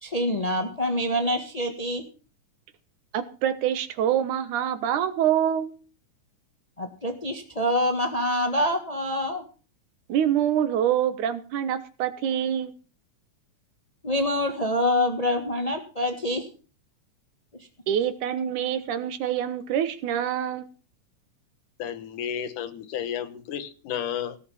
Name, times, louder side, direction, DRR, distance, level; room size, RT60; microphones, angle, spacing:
voice 1, 0.0-2.0 6.8-9.4 14.0-16.5, left 1 dB, 30° left, 5 dB, 0.6 m, -26 dB
voice 2, 3.1-5.8 10.1-12.7 17.9-20.7, right 10 dB, 70° right, 12 dB, 2.6 m, -25 dB
voice 3, 21.8-24.4, left 9 dB, 75° left, 8 dB, 2.9 m, -32 dB
17.5 x 7.1 x 7.1 m, 0.37 s
omnidirectional pair, 3.7 m